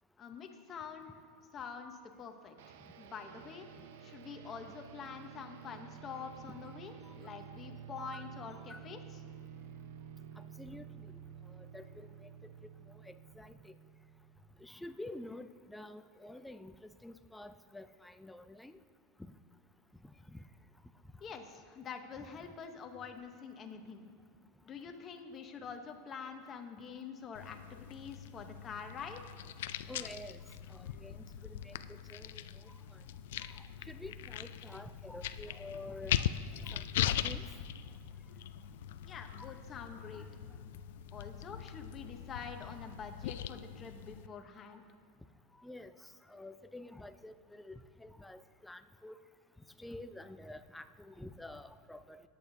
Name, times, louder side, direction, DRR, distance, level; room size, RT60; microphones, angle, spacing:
voice 1, 0.2-1.1 1.5-3.7 4.0-9.0 21.2-24.0 24.6-29.2 39.1-40.3 41.1-44.8, left 6 dB, 25° left, 5 dB, 0.8 m, -46 dB
sound 1, 2.6-14.8, right 8 dB, 70° right, 0.6 m, -51 dB
voice 2, 11.6-12.1 13.1-13.7 14.6-16.7 17.0-18.7 19.2-19.3 20.3-20.4 29.9-30.4 30.7-31.7 32.1-32.7 33.5-36.2 36.6-37.4 39.4-39.5 40.1-40.2 45.6-45.9 46.3-49.1 49.8-52.2, left 1 dB, 5° left, 10 dB, 0.3 m, -49 dB
sound 2, 27.3-44.3, left 11 dB, 80° left, 0.3 m, -40 dB
18.0 x 8.5 x 2.7 m, 2.3 s
supercardioid pair, 160°, 0 cm